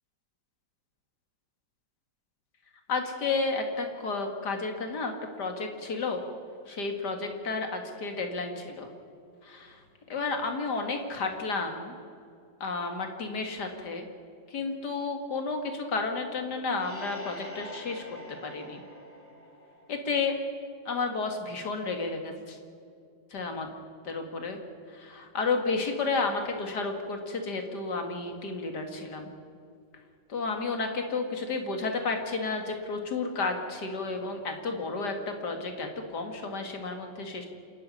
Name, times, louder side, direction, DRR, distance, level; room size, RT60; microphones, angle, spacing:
voice 1, 2.9-6.3 6.7-8.9 9.4-9.8 10.1-12.0 12.6-14.1 14.5-18.8 19.9-20.4 20.9-22.6 23.3-23.7 24.0-24.6 24.9-29.3 30.3-37.5, left 4 dB, 60° left, 4 dB, 2.8 m, -32 dB
sound 1, 16.7-20.3, equal, 5° left, 2.6 m, -46 dB
27.5 x 11.0 x 9.9 m, 2.4 s
omnidirectional pair, 2.0 m